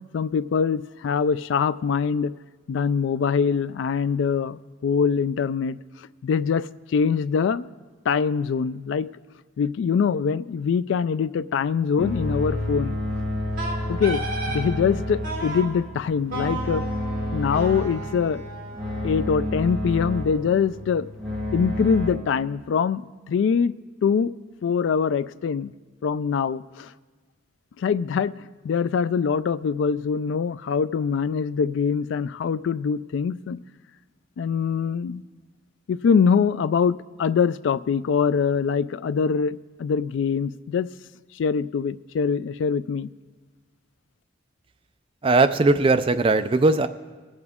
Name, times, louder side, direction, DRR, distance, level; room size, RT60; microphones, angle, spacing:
voice 1, 0.1-2.3 2.7-5.8 6.2-7.6 8.1-9.1 9.6-13.0 13.9-16.8 17.3-18.4 19.0-21.1 21.5-23.7 24.0-24.3 24.6-25.7 26.0-26.9 27.8-33.6 34.4-35.2 35.9-40.9 41.4-43.1, left 6 dB, 70° left, 16 dB, 0.3 m, -23 dB
sound 1, 12.0-22.1, left 1 dB, ahead, 1.9 m, -30 dB
Wind instrument woodwind instrument, 13.6-14.7 15.2-15.7 16.3-19.3, right 2 dB, 45° right, 2.3 m, -34 dB
voice 2, 45.2-46.9, right 3 dB, 25° right, 9 dB, 0.4 m, -19 dB
22.0 x 8.0 x 3.6 m, 1.4 s
head